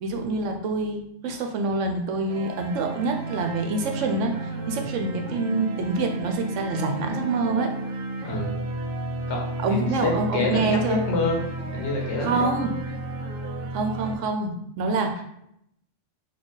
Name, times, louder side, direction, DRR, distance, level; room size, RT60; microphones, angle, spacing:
voice 1, 0.0-7.7 9.6-11.0 12.2-12.7 13.7-15.2, right 3 dB, 75° right, 5 dB, 1.0 m, -26 dB
sound 1, 2.3-14.1, right 2 dB, 55° right, 0.7 m, -32 dB
voice 2, 8.2-8.6 9.3-9.4 9.7-11.4 11.7-12.7, left 2 dB, 65° left, 0 dB, 1.1 m, -27 dB
4.1 x 2.8 x 3.9 m, 0.75 s
omnidirectional pair, 1.3 m